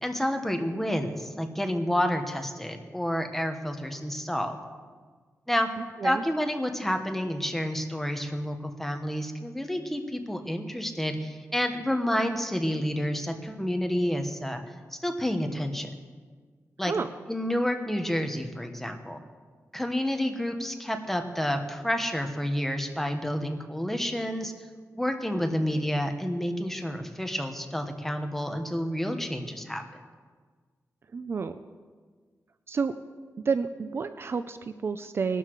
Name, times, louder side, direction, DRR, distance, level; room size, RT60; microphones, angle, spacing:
voice 1, 0.0-4.6 5.5-5.7 6.0-14.6 14.9-15.9 16.8-16.9 17.3-19.2 19.7-24.5 24.9-29.8, equal, 5° left, 5 dB, 1.2 m, -29 dB
voice 2, 5.8-6.2 16.9-17.1 31.1-31.6 32.7-32.9 33.4-35.4, right 5 dB, 45° right, 10 dB, 0.5 m, -30 dB
19.5 x 12.5 x 4.7 m, 1.5 s
wide cardioid pair, 150°, 6 cm